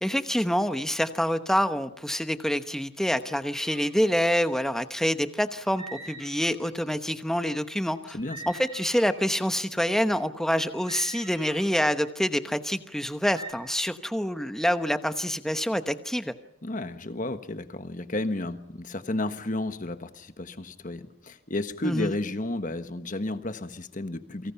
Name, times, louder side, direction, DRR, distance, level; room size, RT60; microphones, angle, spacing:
voice 1, 0.0-8.2 8.5-16.3 21.8-22.1, equal, ahead, 9 dB, 1.0 m, -26 dB
sound 1, 3.6-4.0 5.7-7.0 8.2-9.2 10.7-11.8 13.3-13.5, right 2 dB, 20° right, 7.2 m, -43 dB
voice 2, 16.6-24.5, left 2 dB, 40° left, 9 dB, 1.4 m, -32 dB
29.0 x 24.0 x 5.8 m, 0.74 s
head